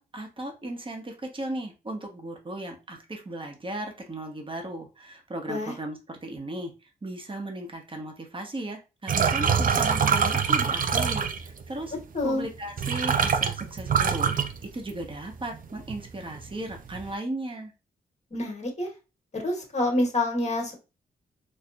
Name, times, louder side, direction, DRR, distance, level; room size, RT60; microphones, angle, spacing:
voice 1, 0.0-11.9 12.2-17.7, right 1 dB, 30° right, 3 dB, 1.2 m, -36 dB
sound 1, 9.1-11.6 12.4-12.5 12.8-15.2 15.5-16.0 16.3-17.0, right 6 dB, 50° right, 0.5 m, -24 dB
voice 2, 12.1-12.4 18.3-18.9 19.3-20.8, left 1 dB, 40° left, 1 dB, 1.5 m, -27 dB
4.3 x 2.4 x 2.5 m, 0.29 s
cardioid pair, 60°, 18 cm